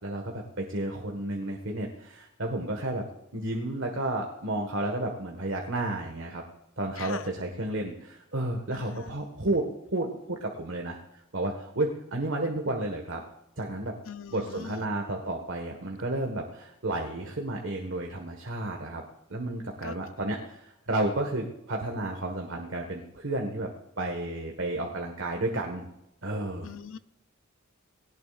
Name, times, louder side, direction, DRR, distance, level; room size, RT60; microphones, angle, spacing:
voice 1, 0.0-3.0 3.3-6.4 6.8-11.0 11.3-13.2 13.6-13.9 14.3-19.0 19.3-23.7 24.0-25.9 26.2-26.7, right 1 dB, 65° right, 2 dB, 1.6 m, -32 dB
voice 2, 7.0-7.3 8.7-9.1 14.0-14.9 19.8-20.0 26.6-27.0, left 6 dB, 70° left, 12 dB, 0.6 m, -42 dB
19.0 x 18.0 x 2.5 m, 0.88 s
head